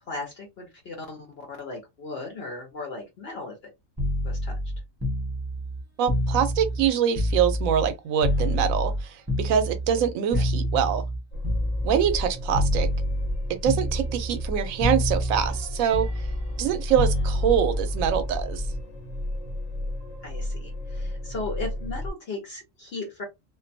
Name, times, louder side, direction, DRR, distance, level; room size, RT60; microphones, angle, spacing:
voice 1, 0.1-1.2 1.5-3.5 4.2-4.5 20.2-23.2, left 3 dB, 55° left, 0.9 m, -36 dB
sound 1, 4.0-7.9 8.2-12.2 12.5-13.4 13.6-14.5 14.8-18.8 20.0-20.2, left 1 dB, 15° right, 0.8 m, -27 dB
voice 2, 6.0-8.9 9.4-11.0 11.8-12.9 13.5-16.1 16.6-18.6, right 9 dB, 85° right, 1.0 m, -24 dB
sound 2, 11.3-22.1, left 1 dB, 75° left, 1.1 m, -34 dB
2.5 x 2.2 x 2.6 m
omnidirectional pair, 1.4 m